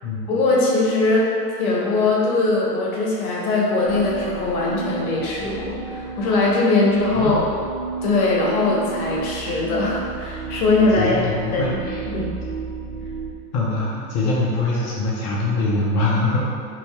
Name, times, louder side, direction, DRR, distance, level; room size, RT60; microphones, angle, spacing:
voice 1, 0.3-1.3 1.6-7.4 8.0-11.8 12.1-12.3, left 3 dB, 60° left, -4 dB, 0.9 m, -21 dB
sound 1, 3.8-13.3, right 5 dB, 55° right, 1.1 m, -32 dB
voice 2, 11.0-12.0 13.5-16.4, left 2 dB, 40° left, -6 dB, 0.6 m, -23 dB
2.7 x 2.6 x 3.2 m, 2.3 s
figure-of-eight pair, 95°, 48 cm